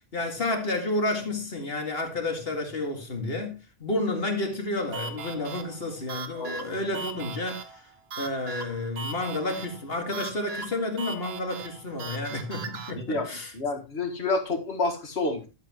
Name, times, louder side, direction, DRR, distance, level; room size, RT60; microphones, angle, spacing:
voice 1, 0.1-7.8 8.1-13.5, left 2 dB, 65° left, 2.4 m, -30 dB
sound 1, 4.9-12.9, right 4 dB, 75° right, 1.3 m, -39 dB
voice 2, 6.3-6.9 12.9-13.3 13.5-15.5, left 3 dB, 90° left, 2.1 m, -29 dB
11.5 x 8.1 x 3.1 m
omnidirectional pair, 1.1 m